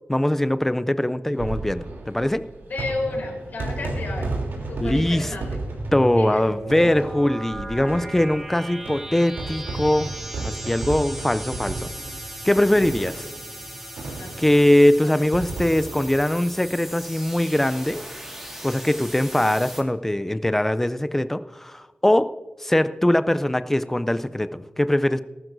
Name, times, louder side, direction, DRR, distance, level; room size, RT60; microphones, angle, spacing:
voice 1, 0.1-2.4 4.8-5.3 5.9-10.1 10.4-11.9 12.4-13.3 14.4-18.0 18.6-22.3 22.6-25.2, left 1 dB, 10° left, 12 dB, 0.4 m, -21 dB
sound 1, 1.3-17.3 17.6-17.7 17.9-18.0 19.3-19.5, right 2 dB, 85° right, 3.1 m, -34 dB
voice 2, 2.6-4.3 4.7-5.6 6.1-6.5 14.2-14.6 15.0-15.3, left 2 dB, 60° left, 0 dB, 3.8 m, -32 dB
sound 2, 5.8-19.8, right 1 dB, 5° right, 1.8 m, -37 dB
19.0 x 12.0 x 2.6 m, 1.3 s
wide cardioid pair, 155°, 4 cm